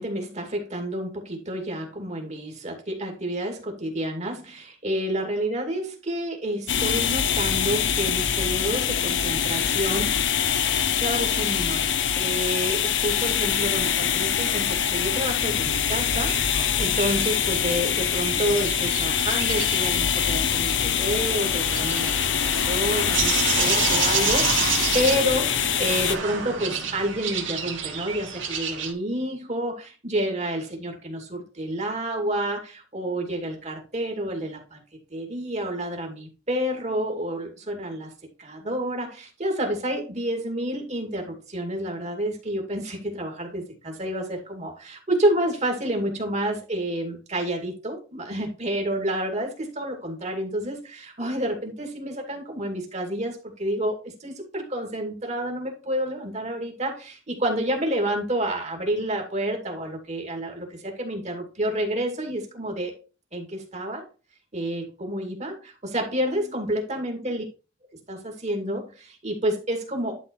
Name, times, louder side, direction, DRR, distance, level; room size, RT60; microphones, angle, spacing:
voice 1, 0.0-10.4 11.0-34.8 35.1-38.1 38.4-62.9 63.3-64.0 64.5-67.4 68.1-70.2, right 1 dB, 35° right, 3 dB, 2.3 m, -29 dB
sound 1, 6.7-26.2, left 8 dB, 65° left, 0.7 m, -24 dB
sound 2, 16.3-28.9, right 6 dB, 80° right, 2.1 m, -30 dB
11.5 x 3.8 x 4.6 m, 0.34 s
head